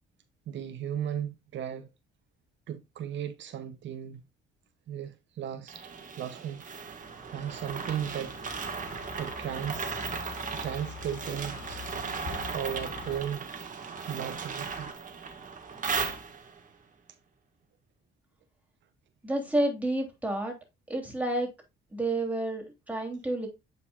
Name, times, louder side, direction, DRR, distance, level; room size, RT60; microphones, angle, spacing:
voice 1, 0.5-1.9 2.7-4.2 4.9-5.9 6.2-6.7 7.2-8.4 9.2-10.1 10.5-12.0 12.5-14.9, right 9 dB, 70° right, 0.7 m, -36 dB
sound 1, 5.7-16.7, right 5 dB, 40° right, 1.6 m, -37 dB
Car passing by, 7.1-13.2, left 6 dB, 65° left, 1.3 m, -45 dB
voice 2, 19.2-20.5 20.9-21.5 21.9-23.5, right 1 dB, 5° right, 3.0 m, -30 dB
8.3 x 5.4 x 2.4 m
cardioid pair, 90°, 20 cm